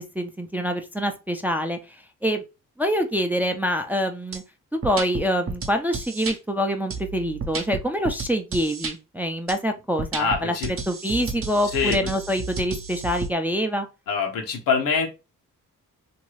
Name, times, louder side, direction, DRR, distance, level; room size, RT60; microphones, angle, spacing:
voice 1, 0.0-2.4 2.8-4.4 4.7-10.5 10.9-13.9, equal, 5° right, 0.4 m, -25 dB
sound 1, 4.3-4.4 4.8-6.4 6.9-8.9 9.5-9.6 10.0-13.3, right 4 dB, 40° right, 0.7 m, -32 dB
voice 2, 10.2-10.7 11.7-12.1 14.1-15.1, left 5 dB, 85° left, 0.8 m, -24 dB
2.6 x 2.3 x 3.1 m
cardioid pair, 65°, 33 cm